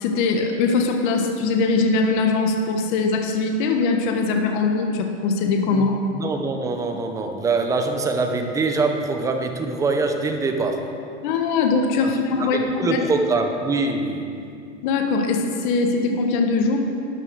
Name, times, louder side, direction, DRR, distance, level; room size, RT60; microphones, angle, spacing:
voice 1, 0.0-6.0 11.2-13.0 14.8-16.8, left 4 dB, 40° left, 4 dB, 1.4 m, -21 dB
voice 2, 6.1-10.9 12.0-12.1 12.4-14.3, right 3 dB, 10° right, 5 dB, 0.6 m, -24 dB
12.5 x 11.0 x 6.4 m, 2.5 s
supercardioid pair, 160°, 36 cm